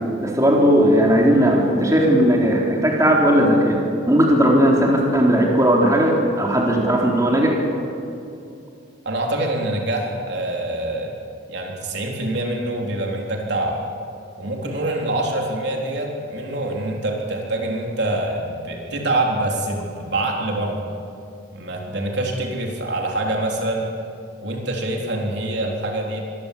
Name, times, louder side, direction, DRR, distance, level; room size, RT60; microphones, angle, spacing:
voice 1, 0.2-3.8 4.1-7.6, equal, 15° right, -1 dB, 3.8 m, -17 dB
voice 2, 9.0-11.1 11.5-13.8 14.4-20.9 21.5-23.9 24.4-26.2, right 1 dB, 60° right, 0 dB, 3.9 m, -25 dB
25.5 x 21.5 x 8.6 m, 2.7 s
head